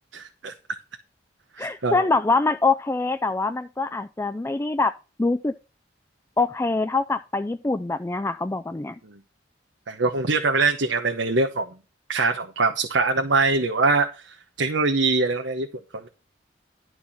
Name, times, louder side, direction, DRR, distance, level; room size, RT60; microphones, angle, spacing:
voice 1, 0.1-0.5 1.6-2.1 9.0-9.2 9.9-11.7 12.1-15.7 15.9-16.1, right 3 dB, 85° right, 1.0 m, -23 dB
voice 2, 1.6-4.9 5.2-5.5 6.4-9.0, left 3 dB, 15° left, 0.4 m, -24 dB
12.0 x 4.6 x 5.8 m
head